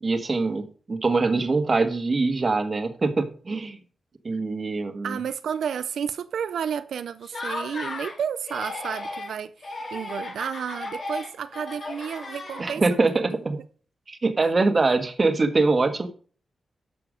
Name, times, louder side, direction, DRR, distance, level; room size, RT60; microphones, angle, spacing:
voice 1, 0.0-3.8 4.2-5.2 12.6-13.6 14.1-16.1, right 3 dB, 35° right, 1.5 m, -23 dB
voice 2, 5.0-12.8, right 7 dB, 90° right, 0.5 m, -31 dB
Laughter, 7.2-8.2 8.4-9.3 9.6-13.0, left 2 dB, 45° left, 4.1 m, -35 dB
11.5 x 6.9 x 5.0 m
wide cardioid pair, 125°, 0 cm